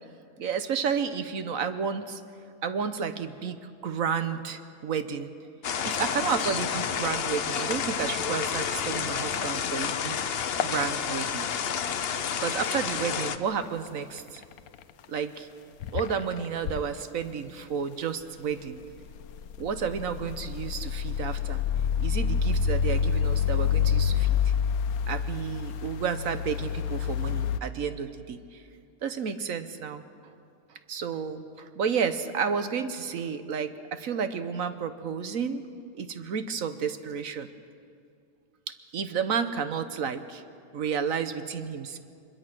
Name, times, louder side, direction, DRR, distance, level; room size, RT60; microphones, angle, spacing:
voice 1, 0.4-2.2 2.6-5.3 5.8-10.2 10.6-11.5 12.4-14.4 15.1-15.5 15.9-18.8 19.6-21.6 22.0-24.5 25.1-28.6 29.0-30.0 30.7-35.6 35.9-37.5 38.9-40.4 40.7-42.0, right 6 dB, 60° right, 10 dB, 1.3 m, -31 dB
sound 1, 5.6-13.4, left 7 dB, 50° left, 0.7 m, -30 dB
sound 2, 13.6-13.9 14.2-14.8 15.2-15.3 15.8-16.8 18.9-27.6, left 7 dB, 70° left, 1.1 m, -27 dB
23.5 x 21.5 x 6.1 m, 2.4 s
omnidirectional pair, 1.7 m